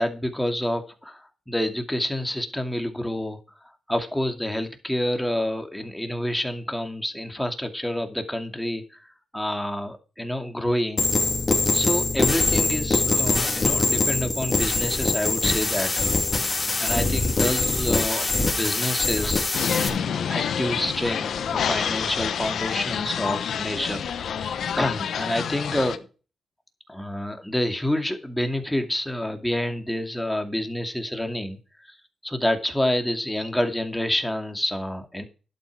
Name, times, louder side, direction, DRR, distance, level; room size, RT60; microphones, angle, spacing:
voice 1, 0.0-9.1 9.3-11.1 11.7-19.5 19.8-26.1 26.9-32.0 32.2-35.2, left 1 dB, 5° left, 6 dB, 2.4 m, -28 dB
sound 1, 11.0-19.9, left 3 dB, 25° left, 2.9 m, -23 dB
sound 2, 19.5-26.0, left 8 dB, 70° left, 1.1 m, -28 dB
11.5 x 8.5 x 4.8 m, 0.34 s
cardioid pair, 95°, 0 cm